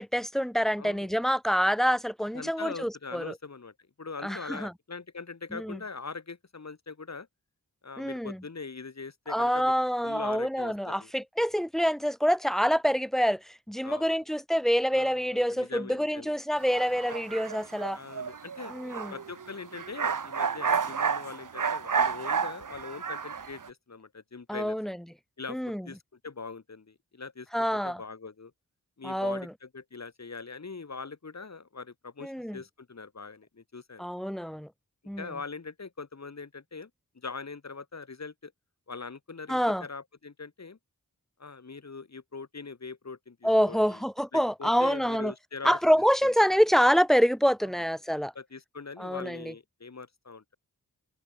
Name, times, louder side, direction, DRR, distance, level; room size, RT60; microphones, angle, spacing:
voice 1, 0.0-3.3 4.2-4.7 5.5-5.8 8.0-8.4 9.3-18.0 18.7-19.1 24.5-25.0 25.5-25.9 27.5-28.0 29.0-29.5 32.2-32.6 34.0-34.7 35.1-35.3 39.5-39.8 43.4-45.3 45.6-48.3 49.0-49.5, equal, ahead, 0.7 m, -26 dB
voice 2, 0.8-1.1 2.3-7.3 7.8-9.7 10.0-11.1 13.8-14.1 14.9-16.4 17.9-18.7 19.1-24.8 25.4-26.0 26.2-28.5 29.0-34.1 35.2-38.5 38.9-40.8 41.4-44.0 44.3-45.8 46.2-46.3 48.4-50.6, left 4 dB, 50° left, 2.1 m, -42 dB
sound 1, 16.6-23.7, right 6 dB, 65° right, 1.2 m, -31 dB
wide cardioid pair, 55°, 34 cm